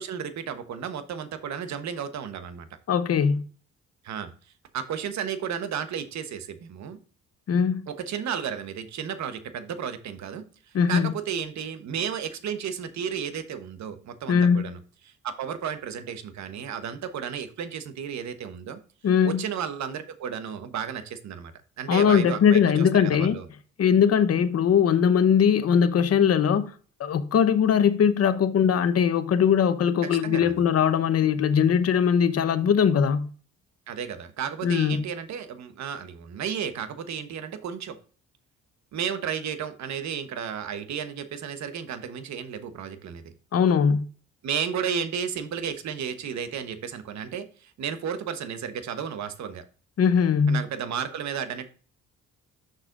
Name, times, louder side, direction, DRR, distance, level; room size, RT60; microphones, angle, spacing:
voice 1, 0.0-2.7 4.0-4.3 4.7-7.0 7.9-10.4 10.9-14.8 15.0-18.8 19.2-21.5 21.8-23.4 30.2-30.6 33.9-38.0 38.9-43.3 44.4-49.6 50.5-51.7, right 8 dB, 65° right, 1.1 m, -33 dB
voice 2, 2.9-3.4 7.5-7.8 10.7-11.1 14.3-14.6 19.0-19.4 21.9-23.3 23.8-26.7 27.0-33.3 34.6-35.0 43.5-44.1 50.0-50.6, left 7 dB, 55° left, 0.9 m, -21 dB
7.0 x 6.6 x 2.5 m
cardioid pair, 90°, 30 cm